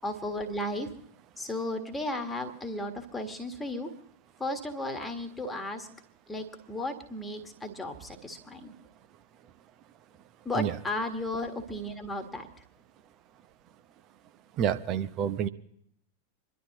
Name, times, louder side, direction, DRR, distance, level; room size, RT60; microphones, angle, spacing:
voice 1, 0.0-0.9 1.4-3.9 4.4-5.9 6.3-8.7 10.4-12.5, left 1 dB, 10° left, 5 dB, 1.6 m, -34 dB
voice 2, 14.5-15.5, right 9 dB, 35° right, 10 dB, 0.8 m, -28 dB
27.5 x 12.0 x 2.9 m, 0.68 s
figure-of-eight pair, 90°, 0 cm